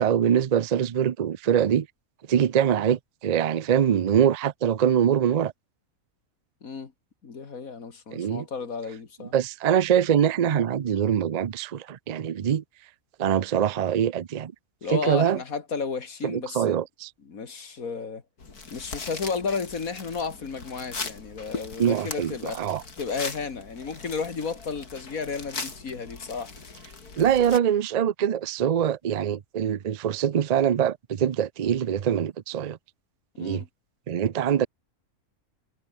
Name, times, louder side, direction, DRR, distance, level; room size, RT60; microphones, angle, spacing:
voice 1, 0.0-1.9 2.3-5.5 8.1-8.5 9.3-12.6 13.2-14.5 14.9-15.4 16.2-17.1 21.8-22.8 27.2-32.8 33.4-33.6 34.1-34.7, right 9 dB, 90° right, 0.3 m, -23 dB
voice 2, 6.6-6.9 7.2-9.3 14.8-16.8 17.3-18.2 18.7-22.6 23.0-26.5 33.4-33.7, left 5 dB, 65° left, 2.5 m, -33 dB
sound 1, 18.4-27.6, left 4 dB, 85° left, 3.6 m, -39 dB
omnidirectional pair, 1.6 m